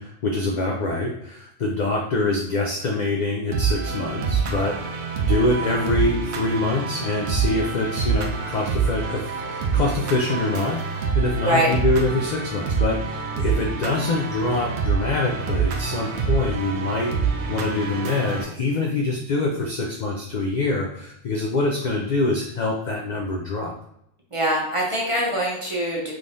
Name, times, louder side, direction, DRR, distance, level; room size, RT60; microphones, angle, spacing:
voice 1, 0.0-17.2 17.5-23.7, left 2 dB, 70° left, 0 dB, 0.4 m, -25 dB
sound 1, 3.5-18.4, right 6 dB, 65° right, 0.8 m, -26 dB
voice 2, 24.3-26.1, right 1 dB, 30° right, -3 dB, 0.7 m, -23 dB
3.6 x 3.2 x 2.6 m, 0.76 s
omnidirectional pair, 1.3 m